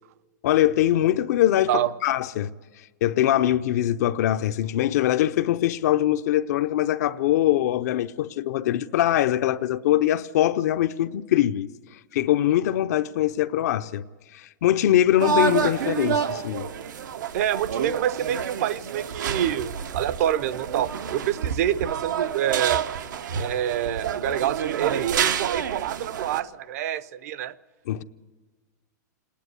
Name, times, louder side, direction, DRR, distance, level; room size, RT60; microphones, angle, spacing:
voice 1, 0.4-2.5 3.0-11.7 12.1-14.0 14.3-16.7 27.9-28.0, left 12 dB, 60° left, 0.6 m, -22 dB
sound 1, 15.2-26.4, right 7 dB, 90° right, 0.9 m, -28 dB
voice 2, 17.3-22.8 23.4-27.5, right 11 dB, 55° right, 0.6 m, -27 dB
26.5 x 10.0 x 9.6 m
supercardioid pair, 155°, 10 cm